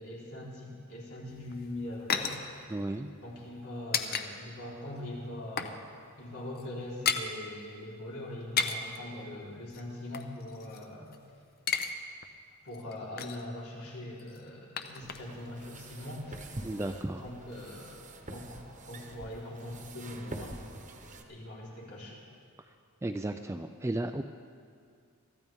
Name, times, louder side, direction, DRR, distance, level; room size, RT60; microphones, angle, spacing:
voice 1, 0.0-2.5 3.2-5.9 6.2-11.2 12.6-16.7 17.1-20.6 21.3-22.2, left 1 dB, 80° left, -5 dB, 4.0 m, -42 dB
sound 1, 1.3-4.3 4.6-4.7 5.1-5.8 6.1-6.2 6.5-7.3 8.3-9.0 9.7-11.2 11.5-11.9 12.2-12.3 12.7-13.5 14.2-15.5 15.7-15.8, left 6 dB, 45° left, 0.7 m, -34 dB
voice 2, 2.7-3.1 16.6-17.2 23.0-24.2, right 1 dB, 10° right, 6 dB, 0.3 m, -34 dB
sound 2, 15.0-21.2, right 2 dB, 35° right, 1.1 m, -46 dB
23.5 x 14.0 x 3.6 m, 2.2 s
head